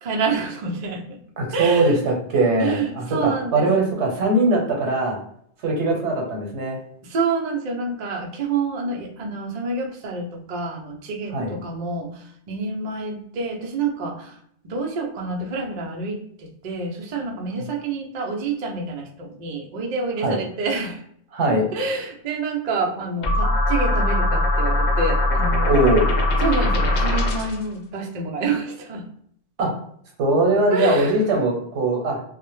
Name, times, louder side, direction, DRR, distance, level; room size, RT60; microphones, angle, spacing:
voice 1, 0.0-1.2 1.5-2.0 2.6-4.0 7.0-14.4 14.6-21.0 21.7-25.8 26.4-29.0 30.7-31.3, right 3 dB, 60° right, 1 dB, 0.4 m, -28 dB
voice 2, 1.4-5.2 5.6-6.8 11.3-11.6 20.2-20.4 21.3-21.7 25.7-26.1 29.6-29.7 30.2-32.2, right 2 dB, 85° right, 1 dB, 1.0 m, -21 dB
sound 1, 23.2-27.6, left 1 dB, 75° left, 0.9 m, -20 dB
2.1 x 2.0 x 3.0 m, 0.66 s
omnidirectional pair, 1.2 m